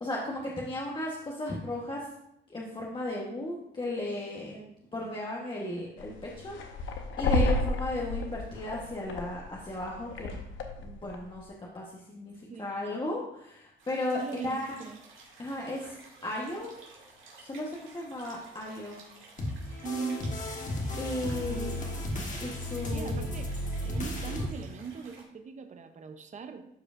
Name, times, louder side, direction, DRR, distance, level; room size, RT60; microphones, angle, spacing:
voice 1, 0.0-2.1 2.5-4.6 4.9-6.9 7.2-10.5 10.8-14.8 15.4-16.0 16.2-16.7 17.4-19.0 21.0-21.8 22.4-23.3, left 1 dB, 25° left, -3 dB, 1.2 m, -35 dB
sound 1, 6.0-11.3, left 2 dB, 80° left, 0.9 m, -32 dB
voice 2, 12.5-12.8 14.1-15.0 19.8-20.3 21.5-22.0 22.9-23.6 23.8-26.7, right 5 dB, 40° right, 7 dB, 0.7 m, -40 dB
sound 2, 13.8-25.2, right 3 dB, 75° right, 2.3 m, -53 dB
sound 3, 19.4-24.4, left 1 dB, 40° left, 1.5 m, -34 dB
12.0 x 4.8 x 2.5 m, 0.79 s
cardioid pair, 90°, 20 cm